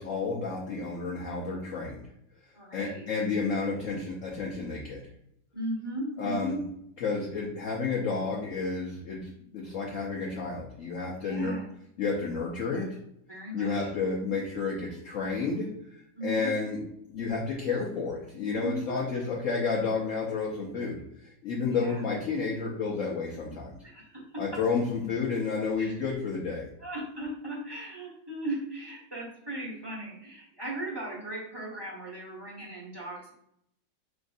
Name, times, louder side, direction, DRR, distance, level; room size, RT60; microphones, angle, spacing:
voice 1, 0.0-2.0 2.7-5.0 6.2-6.6 7.0-11.6 12.0-12.9 13.5-15.7 16.2-16.8 17.1-21.0 21.4-23.7 24.4-26.7, left 4 dB, 60° left, -3 dB, 0.8 m, -31 dB
voice 2, 2.5-3.1 5.5-6.6 11.2-11.6 13.3-13.9 16.2-16.5 18.5-19.1 21.7-22.1 23.8-24.4 25.8-25.9 26.8-33.3, right 1 dB, 15° right, -5 dB, 0.8 m, -37 dB
6.2 x 2.5 x 2.6 m, 0.74 s
omnidirectional pair, 2.1 m